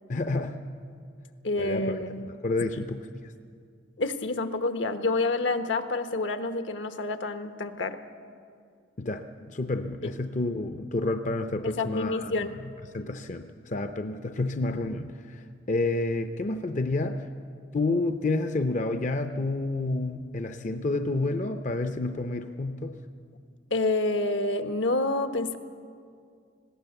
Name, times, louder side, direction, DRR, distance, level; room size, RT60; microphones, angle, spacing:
voice 1, 0.1-0.6 1.6-2.0 2.4-3.3 9.0-12.3 12.9-17.3 17.7-23.0, left 2 dB, 40° left, 8 dB, 0.6 m, -29 dB
voice 2, 1.4-2.2 4.0-8.0 10.0-10.1 11.6-12.5 23.7-25.6, left 2 dB, 75° left, 9 dB, 1.1 m, -28 dB
19.5 x 17.0 x 7.9 m, 2.3 s
head